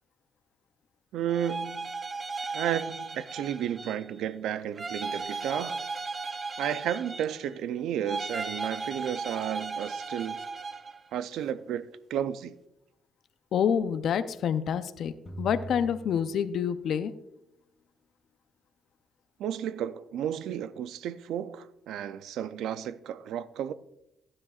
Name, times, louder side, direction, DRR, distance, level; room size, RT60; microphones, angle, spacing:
voice 1, 1.1-1.9 2.5-5.8 6.6-10.4 11.1-12.6 19.4-23.7, right 10 dB, 80° right, 0.4 m, -33 dB
sound 1, 1.3-4.1 4.7-7.6 8.0-11.0, right 4 dB, 35° right, 0.6 m, -36 dB
voice 2, 13.5-15.1 15.4-17.1, left 8 dB, 65° left, 0.5 m, -27 dB
sound 2, 15.3-17.1, right 2 dB, 25° left, 2.1 m, -42 dB
14.5 x 9.7 x 2.4 m
cardioid pair, 90°, 0 cm